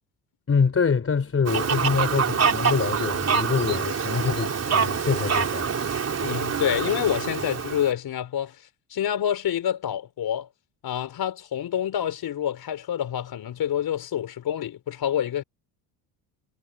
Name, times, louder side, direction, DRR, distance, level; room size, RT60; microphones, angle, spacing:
voice 1, 0.5-5.7, left 5 dB, 30° left, 5.0 m, -25 dB
Fowl, 1.5-7.9, right 6 dB, 35° right, 4.5 m, -25 dB
voice 2, 6.2-8.6 8.9-10.5 10.8-15.4, left 10 dB, 55° left, 4.4 m, -27 dB
cardioid pair, 95°, 44 cm